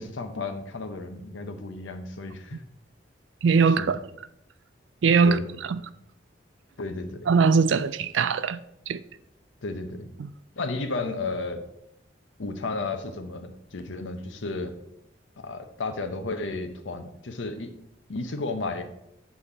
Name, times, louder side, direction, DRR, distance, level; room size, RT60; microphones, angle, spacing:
voice 1, 0.0-2.6 3.8-4.0 5.2-5.4 5.8-5.9 6.8-7.3 9.6-10.1 10.6-11.6 12.4-14.7 15.4-17.7 18.1-18.8, left 3 dB, 80° left, 0.8 m, -33 dB
voice 2, 3.4-4.0 5.0-5.4 5.7-5.8 7.3-8.6 8.9-9.0 10.2-10.3, right 5 dB, 75° right, 0.4 m, -21 dB
7.1 x 4.2 x 4.9 m
head